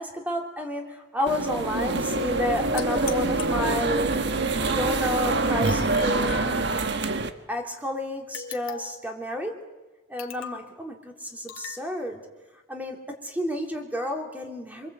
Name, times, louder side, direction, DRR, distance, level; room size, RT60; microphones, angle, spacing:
voice 1, 0.0-4.1 4.7-6.8 7.5-9.6 10.1-12.2 12.7-13.0 13.2-14.9, left 1 dB, 10° right, 2 dB, 3.2 m, -31 dB
sound 1, 1.3-7.3, right 3 dB, 55° right, 1.4 m, -25 dB
sound 2, 2.8-4.2 5.6-7.1 8.3-9.1 10.2-10.7 11.5-11.8, left 6 dB, 80° left, 2.1 m, -39 dB
26.0 x 24.0 x 8.3 m, 1.1 s
head